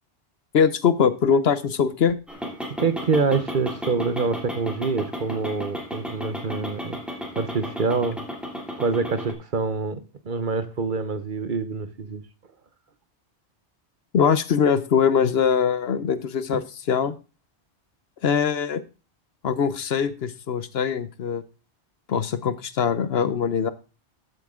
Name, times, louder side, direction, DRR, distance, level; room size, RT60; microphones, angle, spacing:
voice 1, 0.5-2.2 14.1-17.2 18.2-18.8 19.4-21.4 22.1-23.7, left 7 dB, 65° left, 1.0 m, -22 dB
sound 1, 2.3-9.3, equal, ahead, 2.6 m, -34 dB
voice 2, 2.8-7.0 7.4-8.2 8.8-12.2, right 4 dB, 50° right, 1.0 m, -26 dB
13.5 x 8.1 x 3.7 m
omnidirectional pair, 1.1 m